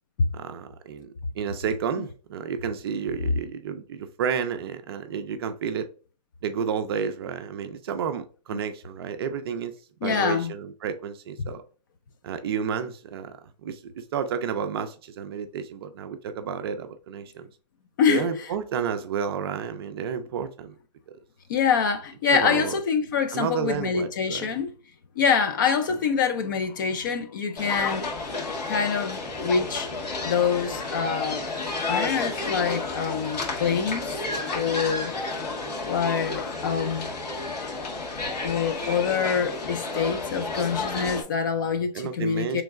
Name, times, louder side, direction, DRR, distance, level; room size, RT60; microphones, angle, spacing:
voice 1, 0.3-5.9 6.4-9.7 10.0-11.6 12.2-17.5 18.1-20.7 21.1-21.2 22.3-22.8 23.3-24.6 41.9-42.6, right 7 dB, 35° right, 0.4 m, -31 dB
voice 2, 10.0-10.5 11.4-11.5 18.0-18.2 21.5-24.7 25.2-28.1 28.7-29.9 30.2-31.4 31.9-34.0 34.5-35.1 35.9-37.1 38.4-42.6, left 6 dB, 30° left, 0.4 m, -25 dB
sound 1, 27.6-41.2, left 3 dB, 70° left, 1.6 m, -31 dB
3.5 x 3.1 x 3.5 m
hypercardioid pair, 150°, 21 cm